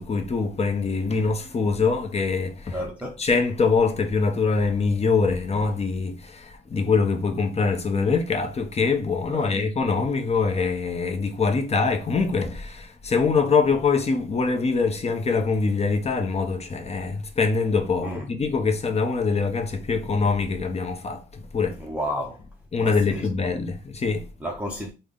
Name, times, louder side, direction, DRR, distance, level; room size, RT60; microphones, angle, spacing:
voice 1, 0.0-2.9 3.2-21.8 22.7-24.3, left 4 dB, 30° left, 0.7 m, -24 dB
voice 2, 2.7-3.2 9.3-9.5 18.0-18.3 21.8-22.4 22.8-23.3 24.4-24.9, equal, 5° right, 0.6 m, -32 dB
3.4 x 2.2 x 3.6 m
cardioid pair, 90°, 20 cm